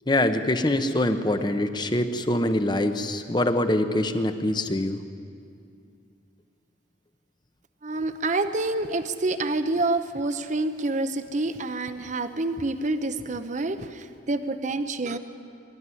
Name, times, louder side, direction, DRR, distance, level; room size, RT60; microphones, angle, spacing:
voice 1, 0.1-5.0, left 1 dB, 25° left, 9 dB, 0.9 m, -24 dB
voice 2, 7.8-15.2, right 2 dB, 40° right, 10 dB, 0.8 m, -27 dB
22.5 x 12.5 x 9.8 m, 2.4 s
head